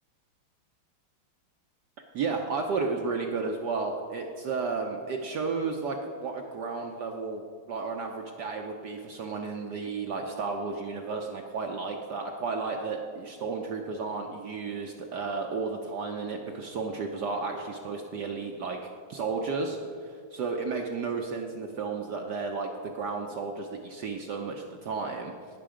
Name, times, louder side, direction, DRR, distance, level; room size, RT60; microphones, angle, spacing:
voice 1, 2.1-7.4 7.7-18.8 19.1-25.3, right 4 dB, 65° right, 2 dB, 1.1 m, -33 dB
18.0 x 6.1 x 4.9 m, 2.2 s
omnidirectional pair, 2.4 m